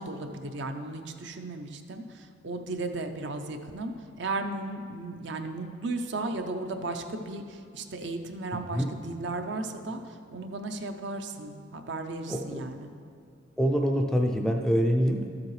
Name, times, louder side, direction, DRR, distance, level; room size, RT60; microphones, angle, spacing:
voice 1, 0.0-10.0 10.3-12.9, right 2 dB, 60° right, 6 dB, 0.6 m, -35 dB
voice 2, 12.3-12.7 13.6-15.3, equal, 5° left, 3 dB, 0.4 m, -25 dB
12.5 x 7.3 x 3.2 m, 2.3 s
head